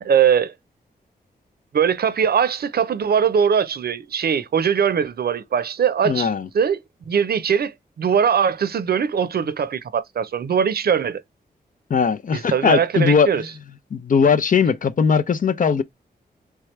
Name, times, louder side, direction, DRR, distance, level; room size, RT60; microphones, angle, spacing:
voice 1, 0.0-0.5 1.7-6.3 6.5-6.8 7.1-11.2 12.3-13.4, right 7 dB, 70° right, 0.6 m, -21 dB
voice 2, 6.1-6.5 11.9-13.3 13.9-15.8, left 6 dB, 55° left, 0.5 m, -19 dB
4.5 x 3.5 x 3.1 m
wide cardioid pair, 125°, 17 cm